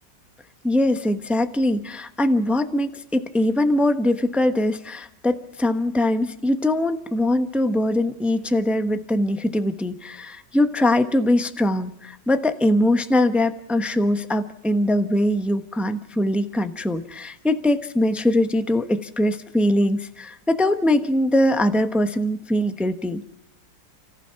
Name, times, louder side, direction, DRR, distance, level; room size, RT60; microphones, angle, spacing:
voice 1, 0.6-23.2, left 1 dB, ahead, 8 dB, 0.6 m, -22 dB
29.5 x 15.0 x 5.9 m, 0.77 s
omnidirectional pair, 2.0 m